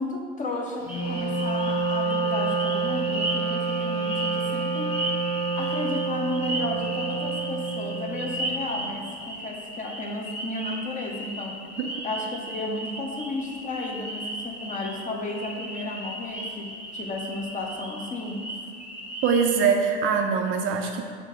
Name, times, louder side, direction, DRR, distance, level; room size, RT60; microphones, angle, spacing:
voice 1, 0.0-5.0 5.6-11.6 12.0-18.5, left 2 dB, 25° left, 2 dB, 0.7 m, -33 dB
Wind instrument woodwind instrument, 0.9-8.7, right 4 dB, 65° left, 1.2 m, -28 dB
sound 1, 0.9-19.6, right 1 dB, 5° right, 0.9 m, -36 dB
voice 2, 19.2-21.0, right 6 dB, 40° right, 4 dB, 0.5 m, -23 dB
5.4 x 3.7 x 5.0 m, 2.1 s
supercardioid pair, 120°, 33 cm